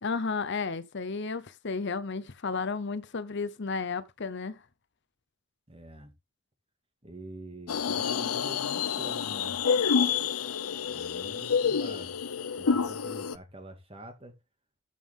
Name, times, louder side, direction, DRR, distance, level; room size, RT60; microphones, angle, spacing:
voice 1, 0.0-4.6, left 4 dB, 55° left, 0.8 m, -33 dB
voice 2, 5.7-6.2 7.0-9.6 10.9-12.2 12.6-14.4, right 1 dB, 25° right, 2.3 m, -46 dB
sound 1, 7.7-13.4, left 6 dB, 85° left, 0.6 m, -28 dB
13.5 x 5.4 x 3.7 m
head